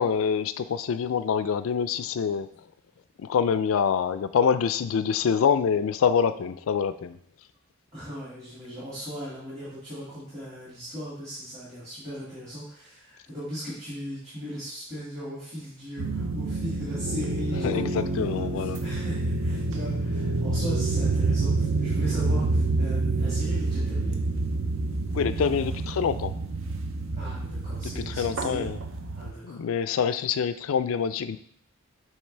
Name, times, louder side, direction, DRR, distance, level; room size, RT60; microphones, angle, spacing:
voice 1, 0.0-2.5 3.2-7.2 17.6-18.8 25.1-26.3 28.1-28.8 29.4-31.4, left 7 dB, 70° left, 12 dB, 0.3 m, -25 dB
voice 2, 7.9-24.2 27.1-28.7 29.2-29.6, equal, 30° right, -10 dB, 2.2 m, -38 dB
sound 1, 16.0-29.3, right 3 dB, 65° right, 0.6 m, -28 dB
8.6 x 3.3 x 3.3 m, 0.65 s
head